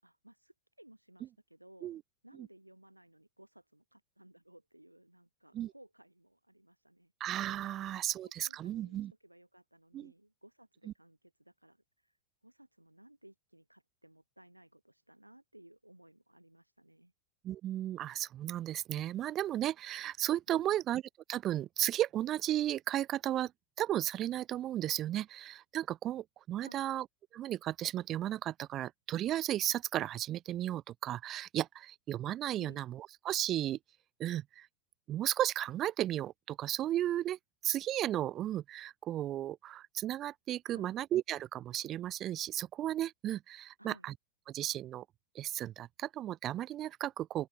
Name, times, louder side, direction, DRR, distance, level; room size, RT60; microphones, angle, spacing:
voice 1, 0.0-1.9 2.2-7.1 7.7-12.2 12.4-17.1 20.5-20.8 26.6-26.9 32.6-32.8 40.7-40.9 43.8-44.1, right 1 dB, 85° right, 7.5 m, -59 dB
voice 2, 7.2-9.1 9.9-10.1 17.4-21.0 21.3-23.5 23.8-27.0 27.3-33.8 34.2-34.7 35.1-37.4 37.6-44.1 44.5-45.0 45.3-47.5, right 12 dB, 30° right, 1.7 m, -34 dB
open air
figure-of-eight pair, 90°, 0 cm